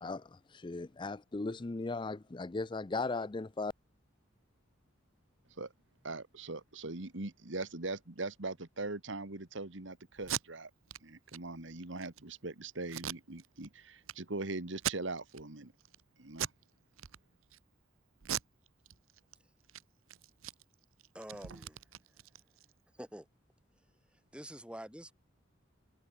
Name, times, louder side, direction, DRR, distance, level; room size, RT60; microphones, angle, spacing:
voice 1, 0.0-3.7, left 3 dB, 25° left, 0.5 m, -37 dB
voice 2, 6.0-10.7 11.0-15.7 16.2-16.5, right 2 dB, 65° right, 1.7 m, -41 dB
Packing tape duct tape, 10.2-10.4 10.9-11.0 11.3-11.4 11.8-12.2 12.9-13.7 14.0-14.1 14.7-15.4 15.8-16.0 16.3-16.6 17.0-17.6 18.2-19.3 19.6-19.8 20.1-22.7, right 10 dB, 85° right, 0.8 m, -40 dB
voice 3, 21.1-21.8 23.0-23.3 24.3-25.1, equal, 5° right, 3.8 m, -46 dB
head